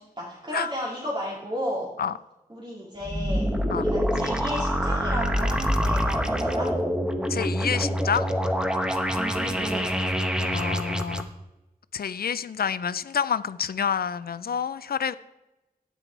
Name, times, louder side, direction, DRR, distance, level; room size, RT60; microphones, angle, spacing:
voice 1, 0.0-1.9 2.5-6.8 9.2-10.1, equal, 30° right, -5 dB, 2.5 m, -33 dB
sound 1, 3.0-11.2, equal, 5° right, 1.1 m, -26 dB
voice 2, 7.3-8.3 10.4-11.3 11.9-15.2, left 7 dB, 75° left, 15 dB, 0.4 m, -28 dB
9.9 x 8.3 x 4.6 m, 0.97 s
cardioid pair, 40°, 16 cm